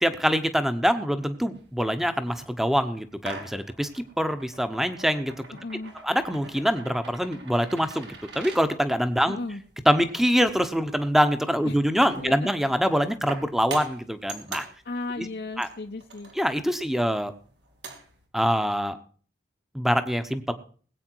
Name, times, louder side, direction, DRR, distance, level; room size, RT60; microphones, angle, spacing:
voice 1, 0.0-5.3 6.0-9.4 9.8-14.7 15.2-15.3 15.6-15.7 16.4-17.3 18.3-19.0 19.7-20.5, equal, ahead, 10 dB, 0.9 m, -24 dB
sound 1, 1.6-18.3, right 3 dB, 80° right, 2.9 m, -45 dB
voice 2, 5.5-5.9 9.3-9.6 11.6-11.8 12.2-12.3 14.8-16.3, left 2 dB, 60° left, 4 dB, 0.8 m, -35 dB
19.5 x 8.6 x 4.6 m, 0.43 s
head